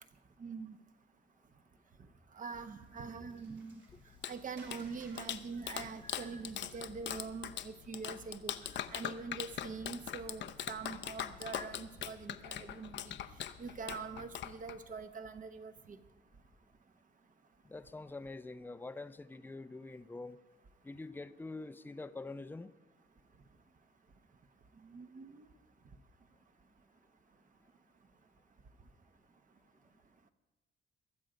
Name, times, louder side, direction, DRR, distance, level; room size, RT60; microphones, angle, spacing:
voice 1, 0.4-0.8 2.3-3.8 4.3-13.2 13.6-16.0 24.8-25.5, right 5 dB, 40° right, 1.1 m, -44 dB
Water, 2.3-7.7, right 3 dB, 65° right, 3.2 m, -63 dB
Clapping, 3.9-15.0, left 10 dB, 65° left, 0.7 m, -42 dB
voice 2, 17.6-20.4 20.8-22.7, left 3 dB, 10° left, 0.5 m, -45 dB
22.0 x 7.7 x 5.1 m
cardioid pair, 90°, 20 cm